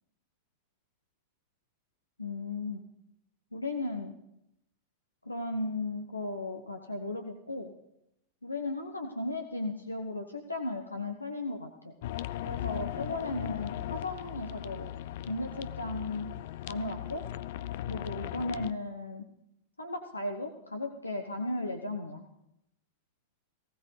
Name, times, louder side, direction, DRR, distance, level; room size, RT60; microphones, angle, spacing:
voice 1, 2.2-2.8 3.5-4.1 5.3-7.7 8.4-11.9 12.4-14.9 15.3-16.3 16.7-17.2 17.9-19.2 19.8-22.2, left 2 dB, 80° left, 4 dB, 1.0 m, -36 dB
sound 1, 12.0-18.7, left 13 dB, 50° left, 0.5 m, -38 dB
19.0 x 16.0 x 3.3 m, 0.83 s
figure-of-eight pair, 90°, 0 cm